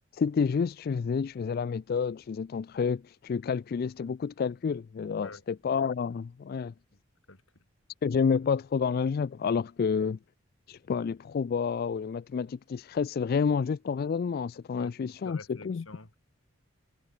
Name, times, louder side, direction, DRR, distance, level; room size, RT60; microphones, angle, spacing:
voice 1, 0.1-6.7 8.0-10.2 10.7-15.4 15.6-15.8, left 6 dB, 50° left, 0.3 m, -29 dB
voice 2, 5.1-5.4 6.9-7.0 7.3-7.4 14.7-16.2, left 3 dB, 80° left, 4.8 m, -47 dB
head